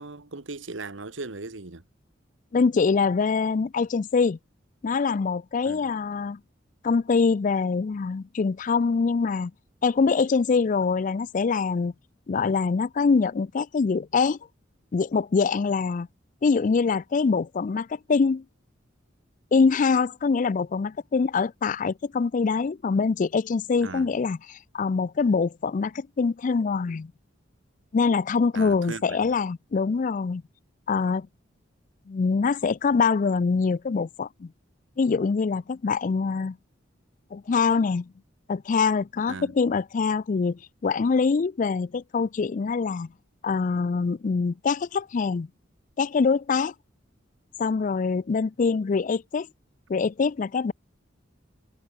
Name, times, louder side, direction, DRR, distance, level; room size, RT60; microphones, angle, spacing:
voice 1, 0.0-1.8 5.6-5.9 23.8-24.1 28.5-29.3 39.3-39.5, right 3 dB, 85° right, 1.6 m, -38 dB
voice 2, 2.5-4.4 4.8-6.4 6.8-9.5 9.8-11.9 12.3-14.4 14.9-16.1 16.4-18.4 19.5-27.1 27.9-30.4 30.9-31.3 32.1-34.5 35.0-36.6 37.3-38.1 38.5-43.1 43.4-45.5 46.0-46.7 47.6-49.5 49.9-50.7, left 5 dB, 45° left, 0.4 m, -24 dB
head